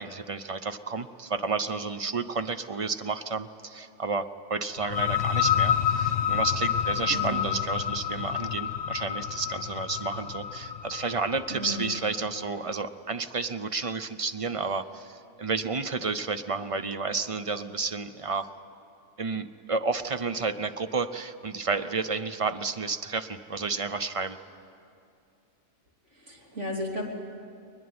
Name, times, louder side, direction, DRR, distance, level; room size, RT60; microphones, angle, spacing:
voice 1, 0.0-18.5 19.2-24.4, right 4 dB, 40° right, 11 dB, 0.5 m, -31 dB
sound 1, 4.8-12.3, left 9 dB, 60° left, 1.2 m, -29 dB
voice 2, 7.1-7.5 11.5-11.9 26.2-27.1, left 1 dB, 60° right, -1 dB, 3.4 m, -34 dB
21.5 x 21.0 x 9.5 m, 2.5 s
omnidirectional pair, 1.4 m